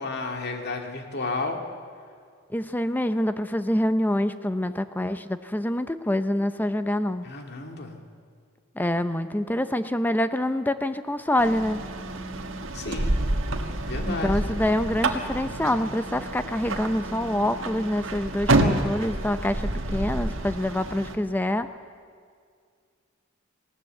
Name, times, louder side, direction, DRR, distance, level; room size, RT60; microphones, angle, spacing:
voice 1, 0.0-1.6 7.2-7.9 12.7-13.2 13.9-14.4, left 3 dB, 55° left, 3 dB, 2.0 m, -32 dB
voice 2, 2.5-7.3 8.8-11.8 14.0-21.7, left 1 dB, 10° left, 11 dB, 0.5 m, -26 dB
sound 1, 11.4-21.2, right 2 dB, 65° right, 1.5 m, -28 dB
19.5 x 18.0 x 7.8 m, 2.1 s
head